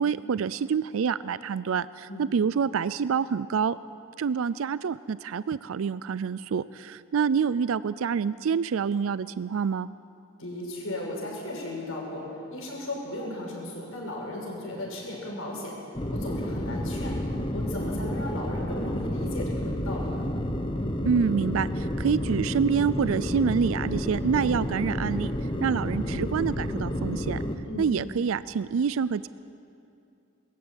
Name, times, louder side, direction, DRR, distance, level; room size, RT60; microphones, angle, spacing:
voice 1, 0.0-3.8 4.2-9.9 21.1-25.3 25.6-27.4 27.8-29.3, right 6 dB, 75° right, 16 dB, 0.4 m, -27 dB
voice 2, 10.4-15.8 16.1-17.2 17.5-20.3 27.6-27.9, left 1 dB, 80° left, -2 dB, 6.4 m, -36 dB
sound 1, 15.9-27.6, equal, 25° left, 1.0 m, -30 dB
22.0 x 14.5 x 8.9 m, 2.6 s
head